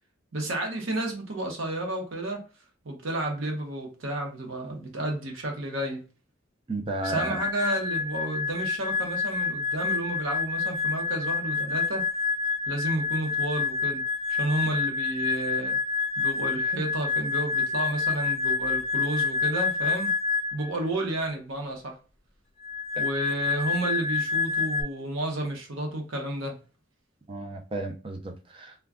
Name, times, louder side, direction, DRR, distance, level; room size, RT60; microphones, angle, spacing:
voice 1, 0.3-2.5 2.8-6.0 7.0-12.1 12.7-15.8 16.2-20.1 20.5-22.0 23.0-26.6, right 1 dB, 85° right, 0.8 m, -31 dB
voice 2, 6.7-7.4 27.3-28.8, right 2 dB, 25° right, 0.4 m, -33 dB
sound 1, 7.0-20.7 22.6-24.8, left 5 dB, 35° left, 0.5 m, -28 dB
2.3 x 2.2 x 3.5 m
head